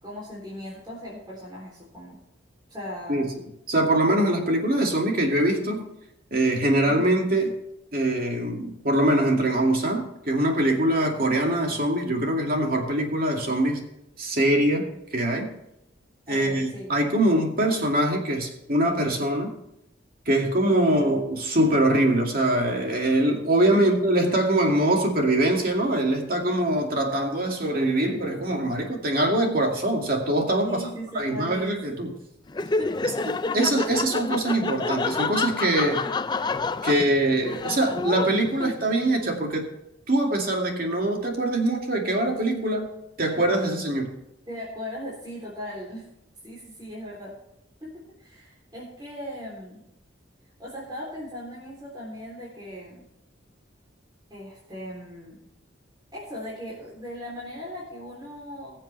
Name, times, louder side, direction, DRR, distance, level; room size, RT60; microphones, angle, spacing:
voice 1, 0.0-2.2 2.7-3.3 6.8-7.0 16.3-17.1 20.9-21.1 23.7-23.9 30.6-31.7 32.6-33.3 44.5-46.1 46.4-47.4 47.8-49.8 50.6-53.1 54.3-55.4 56.1-58.8, equal, 20° right, -6 dB, 3.5 m, -38 dB
voice 2, 3.7-5.8 6.3-7.5 7.9-13.8 14.2-15.5 16.3-19.5 20.3-30.8 31.1-32.1 33.5-36.0 36.8-39.7 40.1-42.9 43.2-44.1, right 1 dB, 50° right, 1 dB, 2.4 m, -23 dB
Laughter, 32.5-39.1, left 3 dB, 20° left, 0.4 m, -29 dB
21.0 x 7.4 x 3.4 m, 0.84 s
head